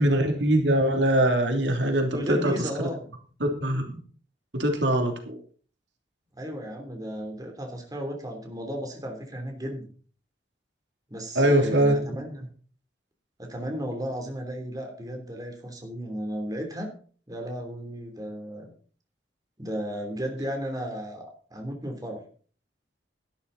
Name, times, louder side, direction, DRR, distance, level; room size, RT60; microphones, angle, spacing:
voice 1, 0.0-2.9 3.4-4.0 4.5-5.4 11.3-12.0, right 1 dB, 80° right, 3 dB, 3.0 m, -23 dB
voice 2, 2.1-3.1 6.4-9.9 11.1-12.5 13.4-16.9 17.3-18.7 19.6-22.2, equal, 20° right, 3 dB, 3.2 m, -34 dB
13.0 x 12.5 x 4.1 m, 0.42 s
head